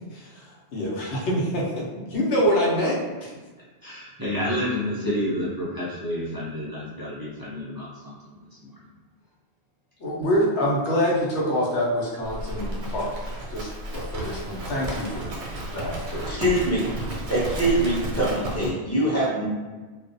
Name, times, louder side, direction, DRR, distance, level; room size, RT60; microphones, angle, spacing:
voice 1, 0.7-3.3 10.0-13.1 13.5-15.3 15.7-16.4, equal, 90° left, -3 dB, 1.0 m, -26 dB
voice 2, 3.8-8.7, left 1 dB, 30° right, -9 dB, 0.4 m, -30 dB
Livestock farm animals working animals, 12.2-18.7, right 1 dB, 85° right, 0.9 m, -33 dB
voice 3, 16.3-16.8 17.3-19.5, right 1 dB, 15° left, -8 dB, 0.7 m, -23 dB
2.4 x 2.1 x 2.5 m, 1.3 s
omnidirectional pair, 1.1 m